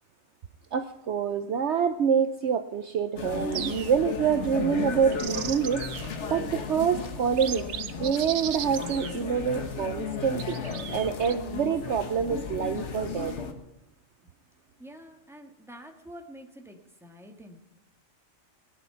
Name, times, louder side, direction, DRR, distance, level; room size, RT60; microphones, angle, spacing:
voice 1, 0.7-7.7 8.0-13.3, right 7 dB, 60° right, 9 dB, 0.9 m, -27 dB
sound 1, 3.2-13.5, left 5 dB, 55° left, 1.5 m, -35 dB
sound 2, 3.5-4.2 4.9-6.2 6.7-6.8 7.3-9.6 10.4-11.3, right 9 dB, 80° right, 1.2 m, -37 dB
voice 2, 14.8-17.6, equal, ahead, 3 dB, 1.5 m, -47 dB
20.0 x 10.5 x 5.7 m, 0.85 s
omnidirectional pair, 1.4 m